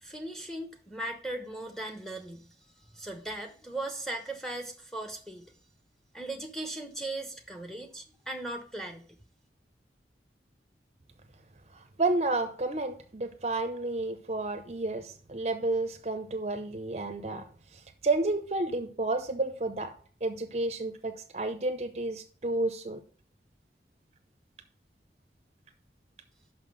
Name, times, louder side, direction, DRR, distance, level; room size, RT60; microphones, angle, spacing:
voice 1, 0.0-2.5 2.8-5.5 6.1-9.2, right 2 dB, 5° left, 1.0 m, -38 dB
voice 2, 12.0-17.4 18.0-19.9 20.2-23.0, right 2 dB, 40° right, 0.6 m, -31 dB
5.9 x 5.8 x 6.7 m
head